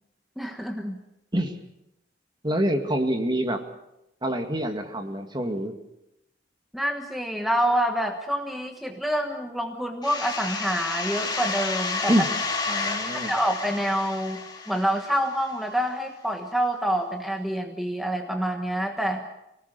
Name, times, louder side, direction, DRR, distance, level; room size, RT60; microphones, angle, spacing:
voice 1, 0.4-1.0 6.7-12.1 13.1-19.3, equal, ahead, 3 dB, 1.2 m, -27 dB
voice 2, 2.4-3.6 4.2-5.8 12.1-12.3 12.7-13.3, right 1 dB, 25° right, 5 dB, 2.1 m, -26 dB
sound 1, 10.0-15.5, left 4 dB, 25° left, 2.8 m, -31 dB
24.5 x 18.5 x 6.8 m, 0.87 s
head